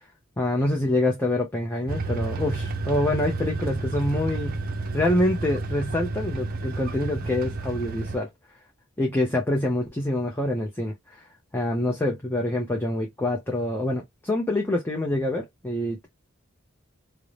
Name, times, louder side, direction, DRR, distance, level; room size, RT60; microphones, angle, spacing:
voice 1, 0.4-4.6 4.9-8.3 9.0-11.2 11.5-16.1, left 1 dB, 10° left, 0.5 m, -26 dB
sound 1, 1.9-8.2, right 3 dB, 45° right, 0.5 m, -31 dB
2.6 x 2.0 x 3.1 m
head